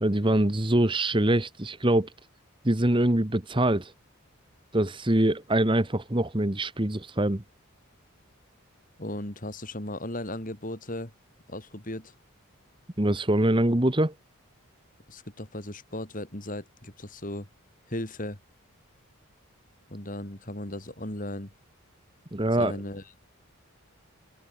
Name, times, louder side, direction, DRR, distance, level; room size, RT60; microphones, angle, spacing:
voice 1, 0.0-2.1 2.6-3.9 4.7-7.4 13.0-14.1 22.3-22.7, right 1 dB, 20° right, 1.3 m, -24 dB
voice 2, 9.0-11.1 11.5-12.1 15.1-17.5 17.9-18.4 19.9-21.5 22.6-23.2, left 1 dB, 35° left, 3.8 m, -36 dB
open air
head